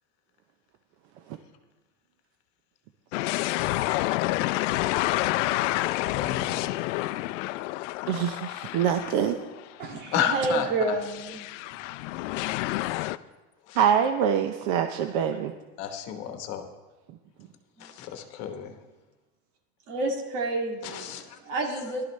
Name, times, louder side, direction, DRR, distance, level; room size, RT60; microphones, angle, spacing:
sound 1, 3.1-9.7 10.1-10.2 11.0-13.2, left 18 dB, 85° left, 0.5 m, -29 dB
voice 1, 5.9-6.9 10.1-10.9 11.7-11.8 12.3-12.6 12.9-13.1 13.7-13.8 15.8-16.7 17.8-18.7 20.8-21.4, left 9 dB, 45° left, 7 dB, 1.1 m, -33 dB
voice 2, 8.1-9.4 13.8-15.5, right 8 dB, 50° right, 7 dB, 0.6 m, -25 dB
voice 3, 9.8-11.4 17.8-17.9 19.9-22.0, right 2 dB, 85° right, 2 dB, 2.3 m, -30 dB
17.5 x 12.0 x 3.2 m, 1.2 s
supercardioid pair, 165°, 36 cm